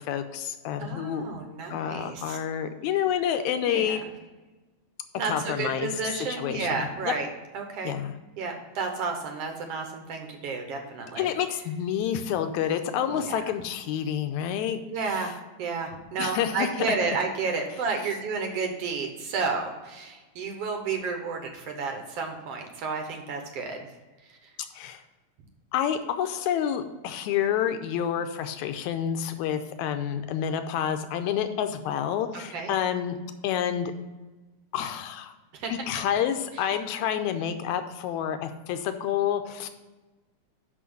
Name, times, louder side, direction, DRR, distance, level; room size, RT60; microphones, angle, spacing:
voice 1, 0.0-1.3 1.7-4.0 5.3-5.9 6.3-6.7 7.0-7.1 7.8-8.2 11.2-14.8 16.2-16.9 24.7-25.0 25.7-33.2 33.4-33.9 34.7-35.3 35.7-39.7, left 9 dB, 90° left, 8 dB, 2.0 m, -28 dB
voice 2, 0.8-2.4 3.7-4.1 5.2-7.3 7.5-7.9 8.4-11.3 13.0-13.4 14.9-23.9 24.3-24.5 32.3-32.7 35.5-36.0 36.5-36.7, right 4 dB, 65° right, 4 dB, 1.8 m, -32 dB
6.2 x 5.8 x 6.8 m, 1.2 s
omnidirectional pair, 3.3 m